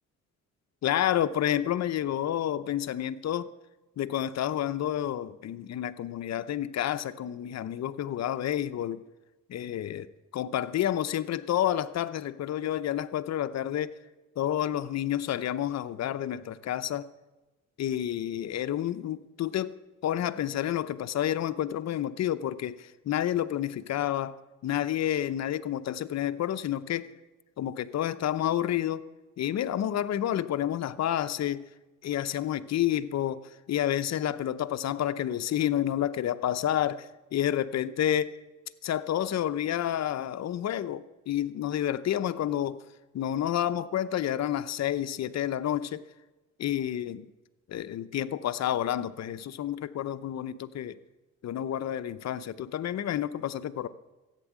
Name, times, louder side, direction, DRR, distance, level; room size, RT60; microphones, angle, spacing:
voice 1, 0.8-3.5 4.0-9.0 9.5-14.0 14.4-17.0 17.8-19.7 20.0-24.3 24.6-27.1 27.6-29.0 29.4-31.6 32.0-38.4 38.8-42.8 43.1-46.0 46.6-47.3 47.7-51.0 51.4-53.9, left 11 dB, 60° left, 12 dB, 0.8 m, -29 dB
14.0 x 9.0 x 7.4 m, 1.1 s
cardioid pair, 90°, 30 cm